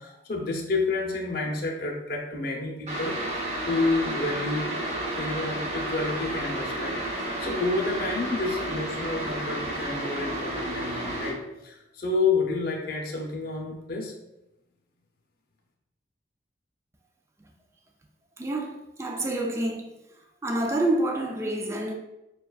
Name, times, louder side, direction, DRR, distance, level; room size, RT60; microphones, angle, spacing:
voice 1, 0.0-14.1, left 3 dB, 55° left, 0.6 m, -30 dB
sound 1, 2.9-11.3, right 1 dB, 40° right, 1.1 m, -31 dB
voice 2, 18.4-19.9 20.4-21.9, right 1 dB, 15° right, 0.4 m, -28 dB
6.9 x 2.3 x 2.3 m
head